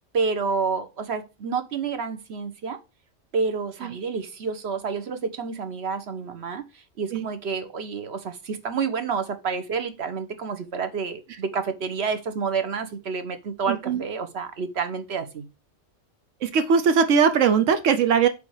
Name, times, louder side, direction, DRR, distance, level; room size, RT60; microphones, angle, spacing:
voice 1, 0.1-2.8 3.3-15.5, right 5 dB, 60° right, 1.2 m, -29 dB
voice 2, 13.7-14.0 16.4-18.3, right 6 dB, 90° right, 1.2 m, -20 dB
8.4 x 3.7 x 4.8 m
omnidirectional pair, 1.2 m